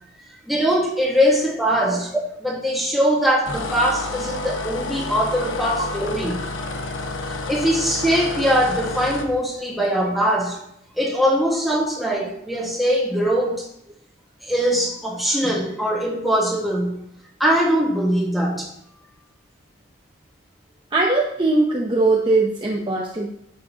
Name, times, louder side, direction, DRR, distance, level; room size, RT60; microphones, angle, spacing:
voice 1, 0.5-6.4 6.8-6.9 7.5-10.6 11.0-13.7 14.4-17.0 17.4-18.7, equal, ahead, -3 dB, 1.7 m, -21 dB
sound 1, 3.5-9.3, left 2 dB, 70° left, 1.0 m, -30 dB
voice 2, 20.9-23.3, right 2 dB, 25° right, -2 dB, 0.9 m, -20 dB
10.5 x 7.6 x 2.9 m, 0.75 s
head